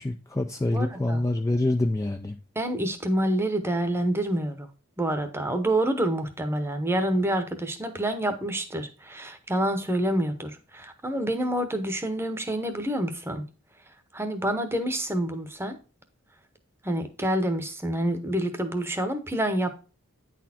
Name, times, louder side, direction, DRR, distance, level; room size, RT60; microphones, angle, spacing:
voice 1, 0.0-2.4, left 2 dB, 15° left, 0.3 m, -26 dB
voice 2, 0.7-1.2 2.6-4.7 5.0-13.5 14.1-15.8 16.8-19.7, right 1 dB, 10° right, 0.8 m, -27 dB
9.3 x 4.2 x 4.3 m
head